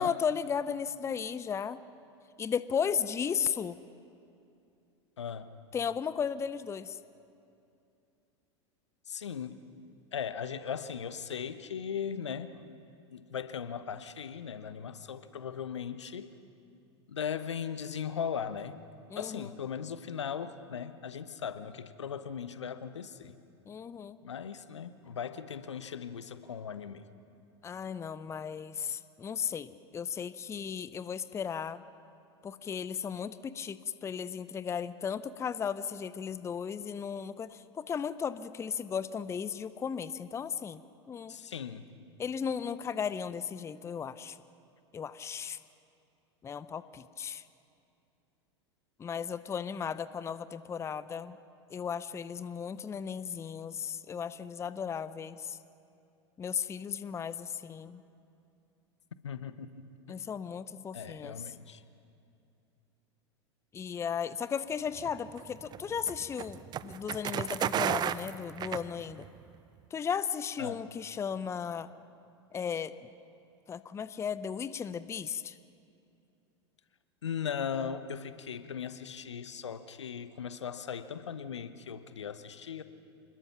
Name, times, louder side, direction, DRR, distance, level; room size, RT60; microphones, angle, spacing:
voice 1, 0.0-1.8 2.4-3.8 5.7-7.0 19.1-19.5 23.7-24.2 27.6-31.8 32.4-40.8 41.1-41.4 42.2-44.4 44.9-45.6 46.4-47.4 49.0-51.4 51.7-55.6 56.4-58.0 60.1-61.4 63.7-69.2 69.9-71.9 72.5-72.9 73.7-75.6, left 7 dB, 20° left, 15 dB, 0.6 m, -35 dB
voice 2, 5.2-5.5 9.1-9.6 10.1-12.7 13.1-16.3 17.1-18.8 19.2-23.3 24.2-27.1 41.3-41.9 59.2-59.7 60.9-61.8 70.6-70.8 77.2-82.8, left 7 dB, 75° left, 12 dB, 1.0 m, -38 dB
sound 1, 65.0-69.4, right 10 dB, 30° right, 0.6 m, -34 dB
26.5 x 21.0 x 5.9 m, 2.6 s
figure-of-eight pair, 85°, 15 cm